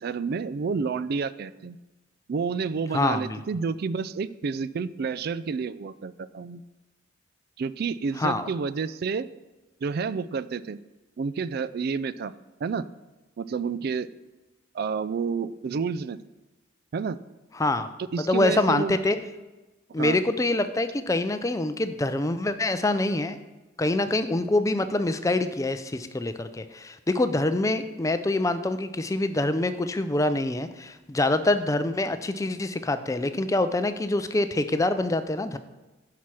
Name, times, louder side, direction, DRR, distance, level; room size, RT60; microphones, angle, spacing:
voice 1, 0.0-1.8 2.3-6.6 7.6-9.3 9.8-10.8 11.2-12.3 12.6-12.8 13.4-14.1 14.7-16.2 16.9-17.2 18.1-19.0 20.0-20.2, right 5 dB, 50° right, 16 dB, 0.3 m, -29 dB
voice 2, 2.9-3.4 8.2-8.5 17.5-17.9 18.2-19.2 19.9-23.4 23.8-35.6, left 2 dB, 15° left, 10 dB, 0.4 m, -25 dB
10.0 x 5.9 x 4.8 m, 1.1 s
head